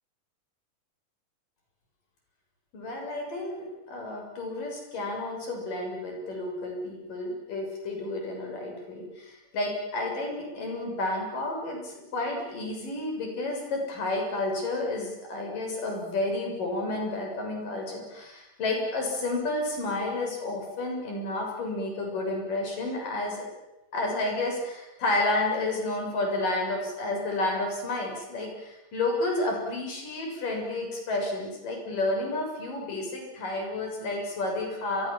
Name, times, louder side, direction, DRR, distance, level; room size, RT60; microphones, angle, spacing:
voice 1, 2.7-23.4 23.9-35.1, left 2 dB, 80° left, 1 dB, 8.5 m, -31 dB
29.0 x 24.0 x 7.5 m, 0.96 s
omnidirectional pair, 3.8 m